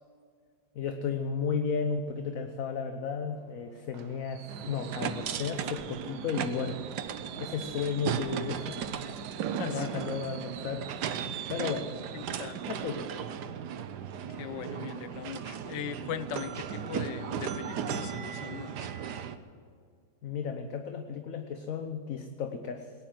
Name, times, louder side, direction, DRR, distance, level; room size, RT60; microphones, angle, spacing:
voice 1, 0.7-6.9 7.4-8.9 9.6-10.9 11.5-11.9 12.7-13.1 20.2-22.9, left 6 dB, 55° left, 6 dB, 1.1 m, -34 dB
Fireworks, 3.3-15.0 15.4-15.6 15.9-16.0, right 10 dB, 85° right, 1.4 m, -43 dB
sound 1, 4.5-19.4, right 8 dB, 70° right, 1.3 m, -37 dB
voice 2, 9.6-10.0 12.1-12.6 14.3-18.9, left 8 dB, 75° left, 13 dB, 1.4 m, -40 dB
18.5 x 10.5 x 7.6 m, 2.2 s
omnidirectional pair, 2.0 m